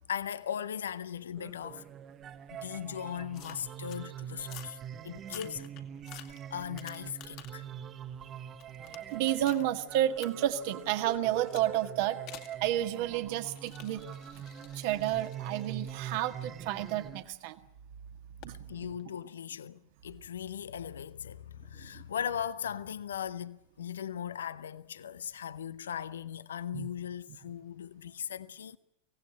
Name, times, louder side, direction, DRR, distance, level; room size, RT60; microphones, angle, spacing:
voice 1, 0.1-1.8 2.6-4.8 5.0-5.7 6.5-7.7 18.7-28.8, left 9 dB, 65° left, 0.8 m, -38 dB
sound 1, 1.4-17.2, right 9 dB, 25° right, 1.0 m, -44 dB
sound 2, 3.3-4.0 4.4-4.8 5.2-7.7 8.1-9.7 10.2-10.3 11.5-11.7 12.3-12.6 13.5-17.4 18.4-18.6, left 13 dB, 40° left, 2.1 m, -51 dB
voice 2, 9.1-12.2 12.6-14.0 14.8-17.6 18.4-18.6 21.9-22.0 26.7-26.9, right 12 dB, 50° right, 1.7 m, -31 dB
25.0 x 18.0 x 8.7 m
figure-of-eight pair, 90°, 0 cm